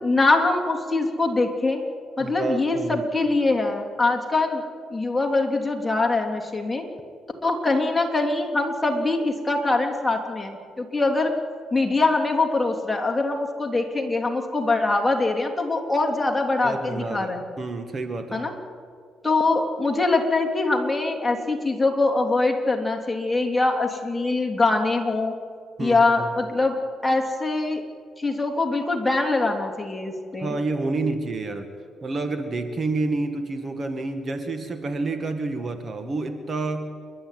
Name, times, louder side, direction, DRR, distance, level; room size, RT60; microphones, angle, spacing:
voice 1, 0.0-1.8 2.2-4.6 4.9-6.9 7.4-11.3 11.7-17.4 18.3-18.5 19.2-25.4 25.8-26.8 27.0-27.8 28.2-30.5, left 3 dB, 15° left, 2 dB, 3.2 m, -23 dB
voice 2, 2.2-3.1 16.6-18.5 25.8-26.3 30.4-31.7 32.0-36.9, right 3 dB, 40° right, 8 dB, 1.9 m, -29 dB
29.5 x 12.0 x 9.3 m, 2.1 s
cardioid pair, 90°, 0 cm